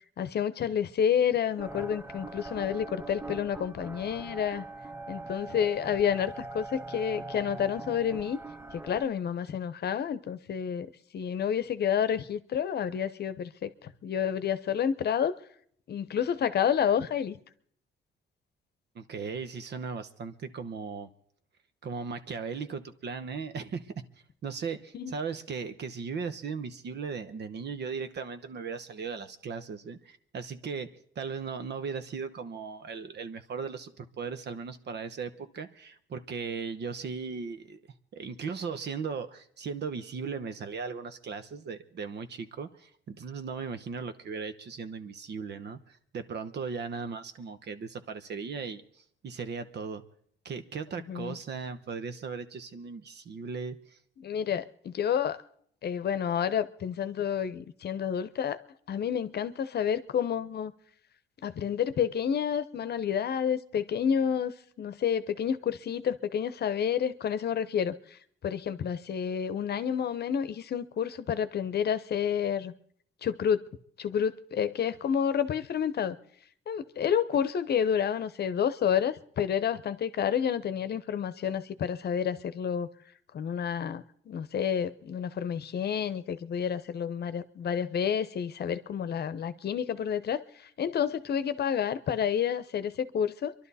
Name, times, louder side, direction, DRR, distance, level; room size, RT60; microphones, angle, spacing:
voice 1, 0.2-4.6 5.1-8.4 8.7-15.3 15.9-17.4 24.9-25.1 51.1-51.4 54.2-55.4 55.8-58.6 58.9-60.7 61.4-72.7 73.2-73.6 74.0-76.2 76.7-82.9 83.3-90.4 90.8-93.5, left 8 dB, 55° left, 13 dB, 0.8 m, -29 dB
sound 1, 1.6-9.0, right 3 dB, 10° right, 0.6 m, -42 dB
voice 2, 18.9-21.1 21.8-23.9 24.4-30.9 31.2-37.8 38.1-50.0 50.4-54.0, right 5 dB, 60° right, 11 dB, 1.1 m, -37 dB
26.5 x 11.5 x 4.2 m, 0.65 s
cardioid pair, 90°, 20 cm